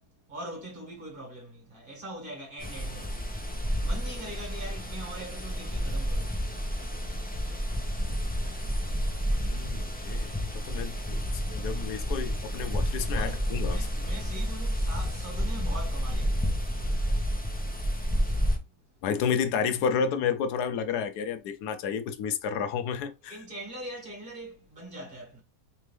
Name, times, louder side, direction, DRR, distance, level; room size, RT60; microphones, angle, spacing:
voice 1, 0.3-6.5 7.0-7.1 13.1-17.2 23.2-25.4, right 1 dB, 35° right, 1.9 m, -43 dB
sound 1, 2.6-18.6, equal, 10° left, 0.7 m, -30 dB
voice 2, 9.3-13.9 19.0-23.4, left 6 dB, 90° left, 1.2 m, -31 dB
3.7 x 3.5 x 3.2 m
omnidirectional pair, 1.6 m